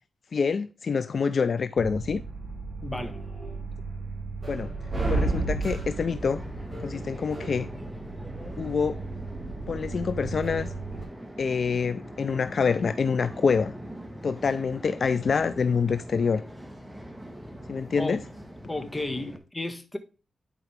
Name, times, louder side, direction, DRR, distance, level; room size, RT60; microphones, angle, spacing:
voice 1, 0.3-2.2 4.5-4.7 5.1-6.4 6.8-7.7 8.6-9.0 9.7-10.7 11.4-13.7 14.2-16.4 17.7-18.2, left 5 dB, 60° left, 0.4 m, -26 dB
sound 1, 1.8-11.0, right 3 dB, 25° right, 3.4 m, -33 dB
voice 2, 2.8-3.2 18.0-18.2 18.7-20.0, left 2 dB, 20° left, 1.6 m, -33 dB
sound 2, 5.1-19.4, equal, 5° right, 1.7 m, -42 dB
11.0 x 4.8 x 3.3 m
cardioid pair, 80°, 0 cm